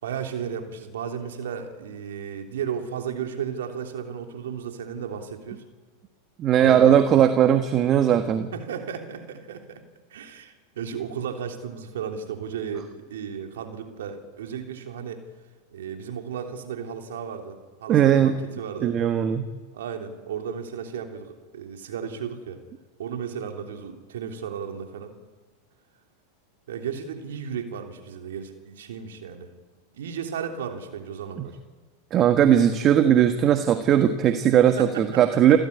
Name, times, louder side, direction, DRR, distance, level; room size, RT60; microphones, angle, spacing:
voice 1, 0.0-5.6 6.6-6.9 8.5-9.8 10.1-15.2 15.7-19.0 19.7-22.6 23.0-25.2 26.7-29.5 29.9-31.6 34.8-35.6, right 7 dB, 75° right, 4 dB, 3.3 m, -34 dB
voice 2, 6.4-8.5 17.9-18.3 18.8-19.4 32.1-35.6, right 10 dB, 40° right, 8 dB, 1.4 m, -18 dB
29.0 x 13.5 x 9.7 m, 1.4 s
hypercardioid pair, 100°, 0 cm